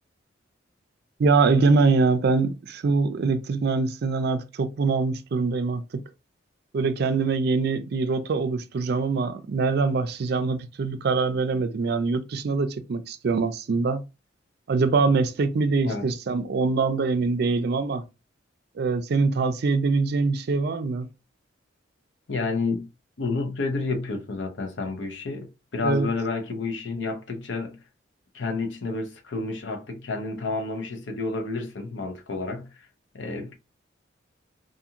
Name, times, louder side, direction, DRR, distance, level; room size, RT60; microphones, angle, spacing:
voice 1, 1.2-6.0 6.7-14.0 14.7-18.0 18.8-21.1 25.8-26.1, right 4 dB, 55° right, 0.4 m, -23 dB
voice 2, 22.3-22.9 23.2-27.8 28.3-32.9 33.1-33.5, left 3 dB, 70° left, 0.7 m, -30 dB
2.6 x 2.4 x 2.8 m
head